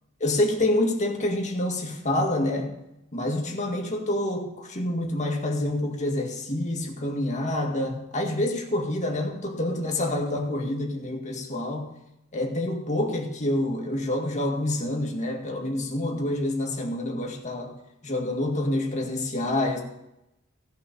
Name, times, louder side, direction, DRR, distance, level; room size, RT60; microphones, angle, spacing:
voice 1, 0.2-2.7 3.1-11.9 12.3-17.8 18.0-19.8, left 1 dB, 35° left, 1 dB, 1.9 m, -27 dB
15.5 x 5.7 x 6.8 m, 0.87 s
head